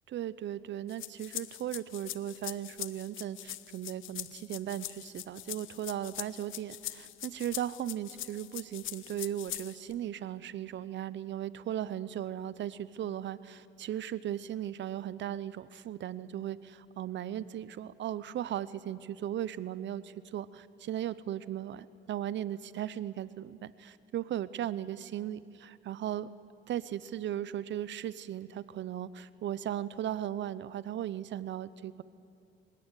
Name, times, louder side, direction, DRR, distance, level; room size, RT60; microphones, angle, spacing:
voice 1, 0.1-26.3 26.7-32.0, right 11 dB, 70° right, 17 dB, 0.8 m, -37 dB
sound 1, 0.9-9.9, left 14 dB, 80° left, 0.8 m, -42 dB
26.5 x 16.5 x 9.8 m, 2.6 s
cardioid pair, 90°, 20 cm